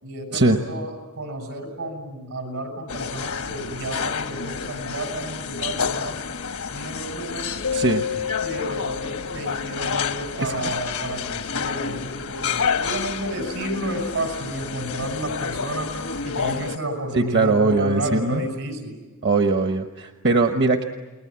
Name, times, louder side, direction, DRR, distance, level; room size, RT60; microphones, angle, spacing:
voice 1, 0.0-6.2 6.7-7.6 8.4-15.9 16.2-18.9, right 1 dB, 80° right, 4 dB, 6.7 m, -31 dB
sound 1, 2.9-16.8, left 6 dB, 80° left, 1.1 m, -29 dB
Keyboard (musical), 7.6-10.4, left 7 dB, 65° left, 0.8 m, -31 dB
voice 2, 7.7-8.0 10.4-10.5 17.1-18.4 19.2-20.8, right 3 dB, 55° right, 6 dB, 1.1 m, -20 dB
29.5 x 21.0 x 8.8 m, 1.2 s
head